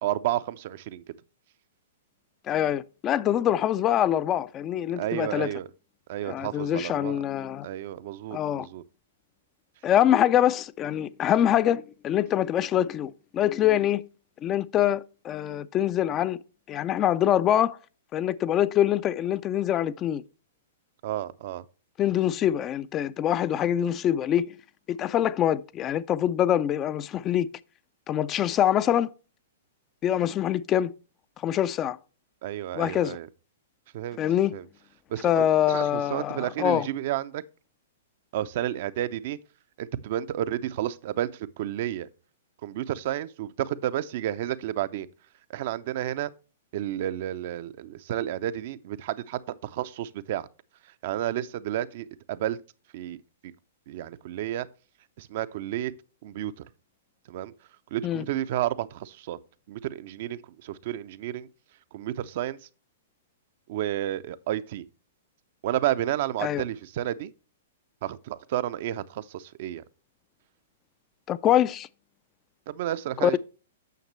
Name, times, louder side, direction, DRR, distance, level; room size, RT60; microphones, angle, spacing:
voice 1, 0.0-1.0 5.0-5.7 6.1-7.2 7.6-8.8 21.0-21.6 32.4-33.3 33.9-34.2 34.5-34.6 35.1-37.4 38.3-39.4 39.8-41.3 41.6-42.1 42.6-45.1 45.5-46.3 46.7-50.4 51.0-52.6 52.9-53.2 53.4-53.5 53.9-54.7 55.2-55.9 56.2-56.6 57.3-57.5 57.9-59.4 59.7-61.5 61.9-62.6 63.7-64.8 65.6-67.3 68.0-69.8 72.7-73.4, right 12 dB, 50° right, 0.5 m, -31 dB
voice 2, 2.5-5.5 6.3-7.7 8.3-8.7 9.8-14.0 14.4-16.4 16.7-17.8 18.1-20.2 22.0-24.6 24.9-27.5 28.1-29.1 30.0-30.9 31.4-32.0 32.7-33.2 34.2-34.6 35.2-36.9 58.0-58.3 66.4-66.6 71.3-71.9 73.2-73.4, left 11 dB, 25° left, 0.4 m, -24 dB
9.2 x 6.5 x 3.1 m
figure-of-eight pair, 110°, 0 cm